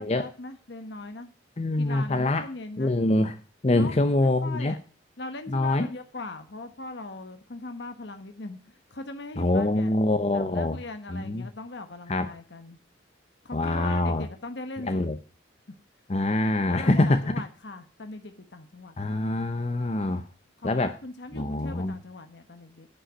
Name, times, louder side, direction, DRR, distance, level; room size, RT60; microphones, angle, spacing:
voice 1, 0.0-1.3 1.8-2.9 3.7-4.8 5.2-9.9 10.3-12.8 13.4-15.1 16.7-19.0 20.6-22.9, left 2 dB, 65° left, 7 dB, 1.1 m, -40 dB
voice 2, 1.6-2.4 2.8-3.4 3.6-4.8 5.5-5.9 9.4-10.8 11.1-11.5 12.1-12.3 13.5-14.3 14.8-15.2 16.1-17.2 19.0-20.2 20.6-21.0 21.3-21.9, left 2 dB, 35° left, 8 dB, 0.6 m, -24 dB
9.9 x 5.5 x 8.1 m, 0.38 s
head